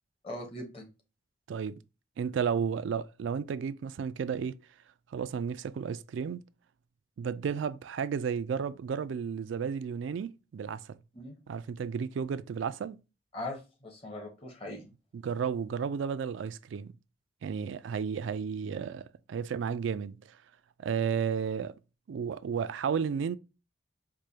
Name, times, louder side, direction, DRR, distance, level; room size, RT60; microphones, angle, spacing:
voice 1, 0.2-0.9 11.1-11.4 13.3-14.9, left 1 dB, 30° left, 1.0 m, -40 dB
voice 2, 1.5-1.8 2.2-4.6 5.1-6.4 7.2-11.0 11.5-13.0 15.1-16.9 17.4-20.4 20.8-21.8 22.1-23.4, right 6 dB, 75° right, 0.3 m, -33 dB
4.8 x 2.2 x 2.7 m
head